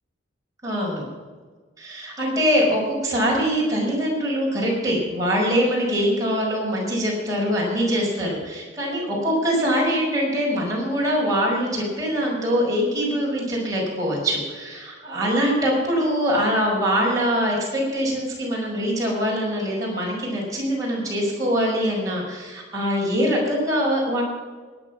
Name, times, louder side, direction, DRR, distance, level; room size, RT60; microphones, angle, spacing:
voice 1, 0.6-1.1 1.8-24.2, equal, 20° right, -4 dB, 5.6 m, -23 dB
19.0 x 9.9 x 6.0 m, 1.4 s
head